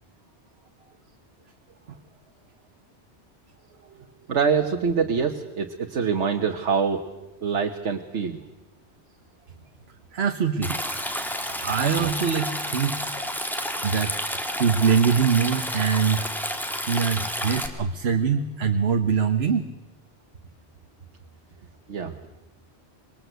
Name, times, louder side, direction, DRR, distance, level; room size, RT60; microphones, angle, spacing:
voice 1, 4.3-7.1 7.4-8.4 21.9-22.3, right 6 dB, 90° right, 4 dB, 1.6 m, -25 dB
voice 2, 10.1-10.8 11.6-13.4 13.8-14.2 14.6-16.3 16.9-19.6, right 6 dB, 65° right, 7 dB, 1.3 m, -23 dB
Stream, 10.6-17.7, equal, ahead, 2.3 m, -30 dB
26.0 x 22.5 x 8.1 m, 1.0 s
omnidirectional pair, 1.2 m